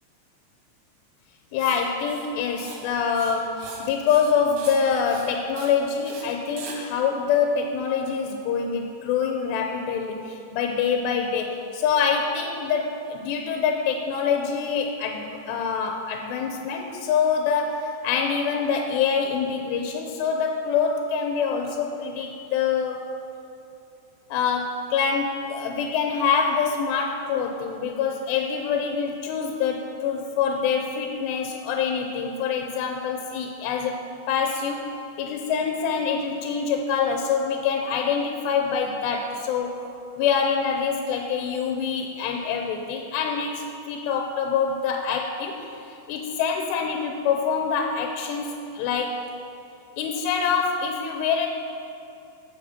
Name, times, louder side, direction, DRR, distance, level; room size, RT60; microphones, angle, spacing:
voice 1, 1.5-23.0 24.3-34.0 34.3-34.8 35.2-39.8 40.2-45.6 45.9-49.2 50.0-51.5, left 6 dB, 85° left, 3 dB, 2.8 m, -25 dB
Writing, 1.6-1.8 2.1-2.3 2.6-2.8 3.1-3.8 4.1-4.3 4.6-4.8 5.1-5.3 5.6-5.7 6.1-6.2 6.6-6.8, right 4 dB, 60° right, 2.4 m, -41 dB
17.5 x 7.0 x 4.3 m, 2.7 s
omnidirectional pair, 4.9 m